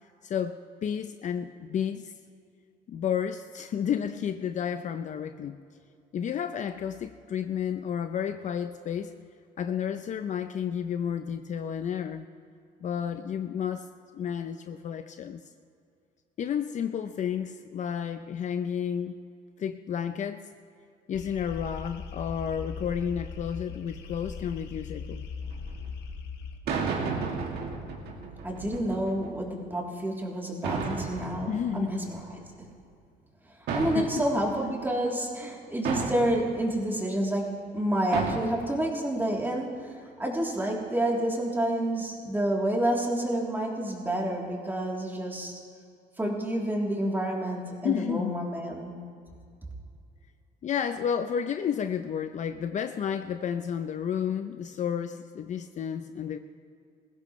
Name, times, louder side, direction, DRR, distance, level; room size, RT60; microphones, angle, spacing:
voice 1, 0.2-2.1 2.9-5.6 6.1-9.1 9.6-12.3 12.8-13.9 14.1-15.4 16.4-19.2 19.6-20.4 21.1-25.3 31.5-31.9 33.9-34.2 47.8-48.4 50.6-56.4, left 8 dB, 45° left, 8 dB, 0.6 m, -31 dB
sound 1, 21.1-26.6, left 5 dB, 75° left, 1.4 m, -39 dB
sound 2, 25.4-25.7 26.7-29.3 30.6-32.4 33.7-34.6 35.8-36.5 38.1-38.4, right 4 dB, 75° right, 2.4 m, -33 dB
voice 2, 28.4-32.7 33.7-45.6 46.2-48.9, right 1 dB, 10° right, -2 dB, 3.2 m, -29 dB
20.5 x 16.0 x 3.2 m, 2.3 s
cardioid pair, 110°, 17 cm